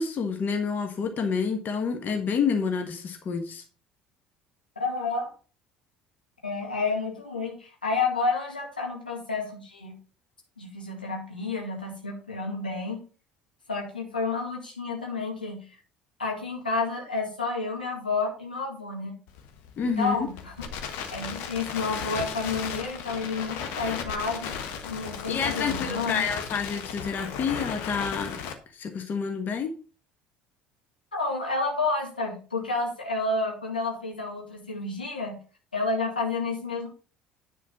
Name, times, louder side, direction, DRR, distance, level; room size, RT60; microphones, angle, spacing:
voice 1, 0.0-3.6 19.8-20.2 25.3-28.4 28.7-29.7, left 5 dB, 40° left, 5 dB, 1.5 m, -28 dB
voice 2, 4.8-5.3 6.4-10.0 10.6-13.0 13.7-15.6 16.2-19.1 20.0-20.7 21.1-24.6 24.9-26.2 31.1-35.4 35.7-36.9, left 3 dB, 85° left, 0 dB, 2.1 m, -30 dB
Crackle, 19.3-28.5, left 7 dB, 55° left, 1.4 m, -35 dB
10.0 x 4.6 x 5.6 m, 0.37 s
figure-of-eight pair, 60°, 5 cm